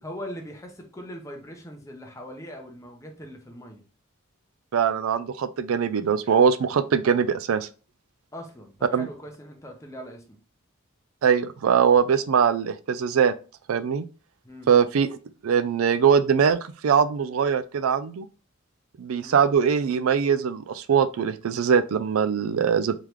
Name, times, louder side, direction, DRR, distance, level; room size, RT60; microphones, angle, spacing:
voice 1, 0.0-3.8 8.3-10.4 14.4-14.7 19.2-19.4, equal, 15° left, 0.7 m, -40 dB
voice 2, 4.7-7.7 8.9-9.1 11.2-13.3 13.7-14.1 14.7-15.1 15.4-18.3 19.0-22.9, right 7 dB, 85° right, 0.4 m, -22 dB
3.7 x 3.3 x 3.0 m
head